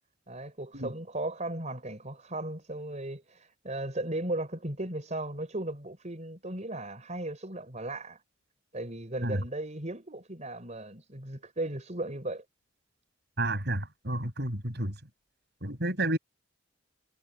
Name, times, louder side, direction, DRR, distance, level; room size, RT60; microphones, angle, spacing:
voice 1, 0.3-8.2 8.7-12.4, right 1 dB, 35° right, 5.3 m, -36 dB
voice 2, 13.4-14.9 15.6-16.2, right 1 dB, 55° right, 7.1 m, -30 dB
head